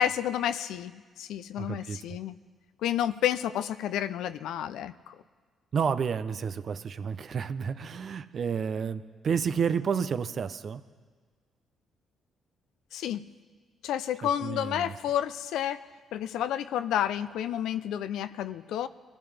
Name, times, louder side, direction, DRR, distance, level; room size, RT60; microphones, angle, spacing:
voice 1, 0.0-2.4 2.8-5.2 12.9-13.3 13.8-15.9 16.1-18.9, left 10 dB, 85° left, 12 dB, 0.5 m, -30 dB
voice 2, 1.6-2.2 5.7-10.8 14.2-14.9, right 6 dB, 50° right, 12 dB, 0.7 m, -30 dB
23.5 x 14.5 x 3.4 m, 1.5 s
cardioid pair, 90°, 0 cm